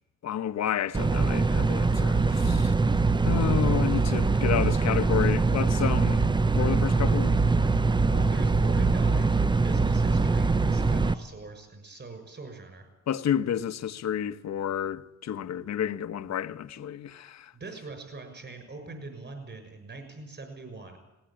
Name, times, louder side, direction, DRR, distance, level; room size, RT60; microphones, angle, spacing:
voice 1, 0.2-2.7 3.2-6.2 6.5-7.4 13.1-17.5, left 9 dB, 60° left, 1.2 m, -30 dB
sound 1, 0.9-11.1, right 3 dB, 15° right, 0.6 m, -23 dB
voice 2, 8.1-12.9 17.5-21.0, right 3 dB, 35° right, 6.4 m, -42 dB
19.0 x 19.0 x 8.9 m
cardioid pair, 90°, 30 cm